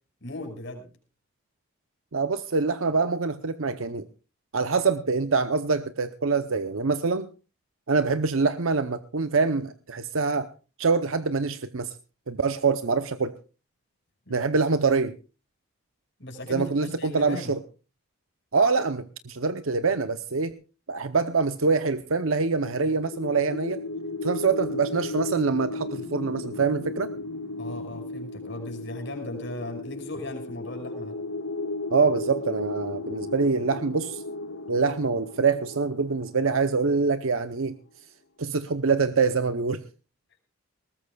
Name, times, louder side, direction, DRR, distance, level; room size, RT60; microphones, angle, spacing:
voice 1, 0.2-0.9 14.3-14.5 16.2-17.6 27.6-31.2, left 1 dB, 55° left, 4 dB, 5.5 m, -37 dB
voice 2, 2.1-4.1 4.5-7.3 7.9-10.5 10.8-11.9 12.3-13.3 14.3-15.2 16.5-17.6 18.5-20.6 20.9-23.8 24.2-27.1 31.9-34.2 34.7-37.8 38.4-39.8, right 4 dB, 70° right, 11 dB, 0.8 m, -25 dB
sound 1, 22.2-37.2, left 2 dB, 80° left, 1.5 m, -35 dB
20.5 x 19.0 x 2.3 m, 0.33 s
head